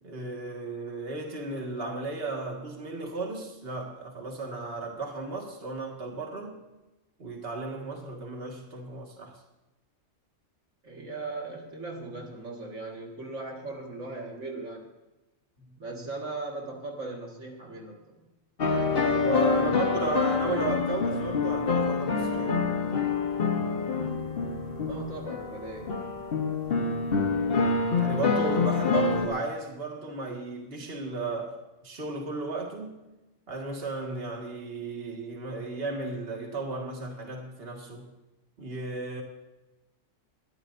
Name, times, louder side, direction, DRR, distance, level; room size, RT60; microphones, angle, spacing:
voice 1, 0.0-6.6 7.2-9.3 19.1-22.6 27.9-31.6 31.8-33.0 33.5-38.1 38.6-39.2, right 3 dB, 50° right, 1 dB, 2.1 m, -34 dB
voice 2, 10.8-14.9 15.8-18.1 19.4-20.5 24.9-26.0 28.6-28.7, right 3 dB, 75° right, 0 dB, 2.3 m, -38 dB
sound 1, 18.6-29.3, left 4 dB, 50° left, 1.4 m, -26 dB
22.0 x 13.5 x 2.7 m, 1.0 s
omnidirectional pair, 1.3 m